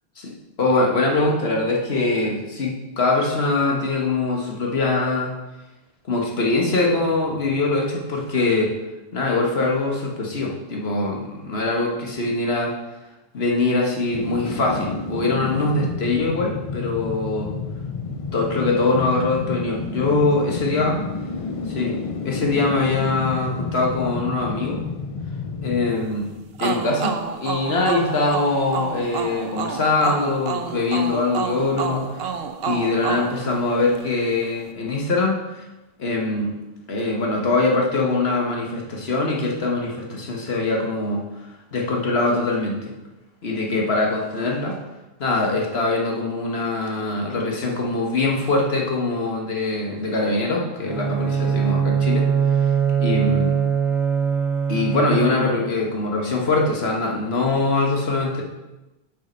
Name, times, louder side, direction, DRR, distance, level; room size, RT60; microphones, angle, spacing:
voice 1, 0.6-5.3 6.1-8.8 9.1-12.7 13.3-17.5 18.0-21.0 21.7-24.9 25.6-32.3 32.7-35.4 36.0-36.6 36.9-41.3 41.7-42.9 43.4-44.8 45.2-52.2 52.6-52.7 53.0-53.6 54.7-58.4, left 3 dB, 75° left, 0 dB, 1.6 m, -23 dB
sound 1, 14.1-27.2 27.5-27.6, left 4 dB, 45° left, 0.5 m, -31 dB
sound 2, 26.6-34.2, right 6 dB, 70° right, 0.9 m, -29 dB
Bowed string instrument, 50.8-55.7, right 7 dB, ahead, 0.7 m, -21 dB
7.6 x 5.6 x 5.3 m, 1.0 s
omnidirectional pair, 1.1 m